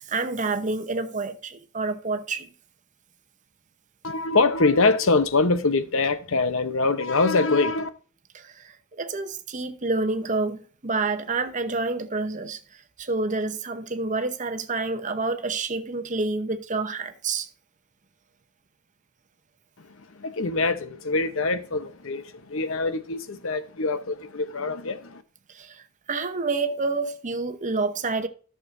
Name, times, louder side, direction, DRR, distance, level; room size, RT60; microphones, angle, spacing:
voice 1, 0.0-2.5 8.3-12.6 13.0-17.5 25.5-28.3, right 3 dB, 35° right, 0.9 m, -28 dB
voice 2, 4.0-7.9 20.0-25.2, left 3 dB, 65° left, 0.8 m, -24 dB
13.5 x 6.7 x 2.6 m
head